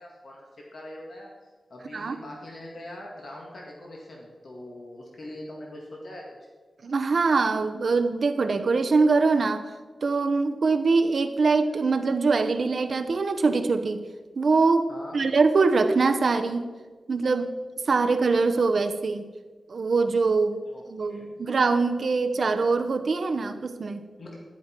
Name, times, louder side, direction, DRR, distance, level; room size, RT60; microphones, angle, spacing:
voice 1, 0.0-6.4 14.9-15.2 20.7-20.8 21.1-21.3 24.2-24.4, left 1 dB, 55° left, -2 dB, 1.9 m, -42 dB
voice 2, 6.8-9.7 10.0-14.0 14.4-16.7 17.1-17.5 17.9-19.3 19.7-20.6 20.9-24.0, right 4 dB, 50° right, 8 dB, 0.8 m, -23 dB
12.0 x 10.5 x 4.5 m, 1.4 s
wide cardioid pair, 170°, 0 cm